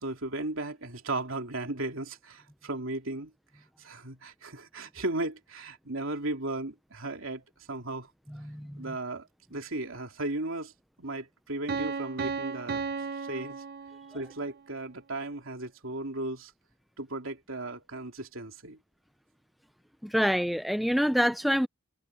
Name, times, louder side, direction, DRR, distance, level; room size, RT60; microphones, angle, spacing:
voice 1, 0.0-3.3 3.8-8.1 8.8-10.7 11.0-12.8 13.2-13.6 14.1-16.5 17.0-18.8, right 2 dB, 65° right, 3.2 m, -36 dB
voice 2, 8.3-8.8 20.0-21.7, equal, ahead, 0.3 m, -26 dB
Piano, 11.7-14.5, right 5 dB, 45° right, 0.6 m, -35 dB
head